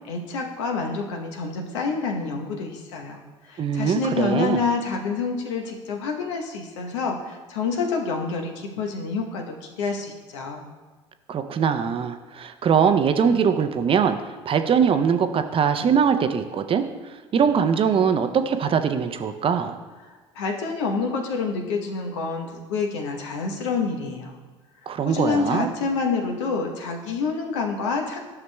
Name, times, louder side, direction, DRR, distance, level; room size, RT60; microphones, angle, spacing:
voice 1, 0.0-3.2 3.4-10.7 20.3-24.3 25.0-28.2, left 4 dB, 75° left, 2 dB, 0.9 m, -27 dB
voice 2, 3.6-4.6 11.3-14.2 14.5-19.8 24.9-25.7, right 7 dB, 35° right, 8 dB, 0.6 m, -22 dB
12.0 x 5.8 x 2.2 m, 1.3 s
hypercardioid pair, 65°, 15 cm